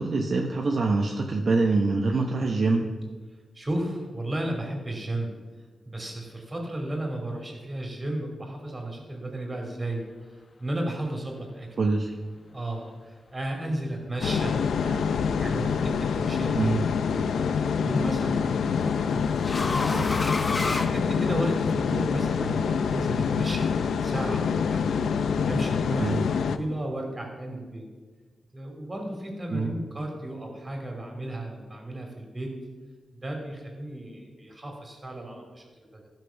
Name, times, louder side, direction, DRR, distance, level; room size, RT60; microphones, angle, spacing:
voice 1, 0.0-2.9 11.8-12.2 16.5-16.9 26.0-26.3 29.5-29.7, right 3 dB, 50° right, 1 dB, 0.9 m, -24 dB
voice 2, 3.5-5.3 5.9-10.0 10.3-11.7 12.5-16.7 17.0-17.3 17.6-24.9 25.4-26.1 26.4-27.9 28.5-32.5 33.1-36.1, right 1 dB, 25° right, 2 dB, 2.8 m, -34 dB
sound 1, 14.2-26.6, left 6 dB, 90° left, 0.5 m, -26 dB
sound 2, 17.7-21.7, left 3 dB, 35° left, 0.8 m, -32 dB
14.5 x 6.0 x 5.8 m, 1.4 s
wide cardioid pair, 100°, 0 cm